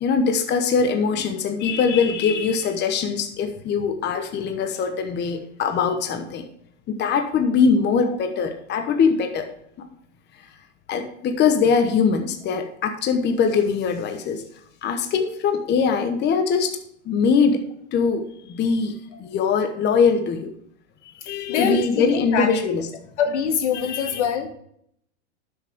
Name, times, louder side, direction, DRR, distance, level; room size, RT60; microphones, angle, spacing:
voice 1, 0.0-6.5 6.9-9.5 9.8-9.9 10.9-14.4 14.8-16.8 17.0-17.6 17.9-20.5 21.2-22.9 23.8-24.2, left 5 dB, 30° left, 1.1 m, -22 dB
voice 2, 21.5-22.5 23.2-24.5, left 6 dB, 75° left, 2.0 m, -24 dB
12.0 x 6.7 x 3.6 m
supercardioid pair, 125°, 35 cm